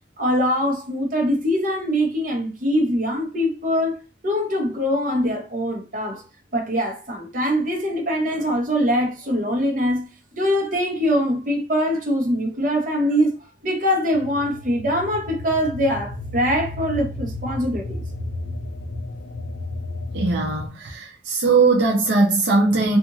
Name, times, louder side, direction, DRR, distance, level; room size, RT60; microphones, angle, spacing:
voice 1, 0.2-4.0 4.2-6.2 6.5-10.1 10.4-13.3 13.6-18.0, equal, 50° right, 0.9 m, -23 dB
sound 1, 14.1-20.7, left 2 dB, 65° left, 0.5 m, -33 dB
voice 2, 20.1-23.0, right 3 dB, 75° right, 0.6 m, -19 dB
2.9 x 2.5 x 2.5 m
head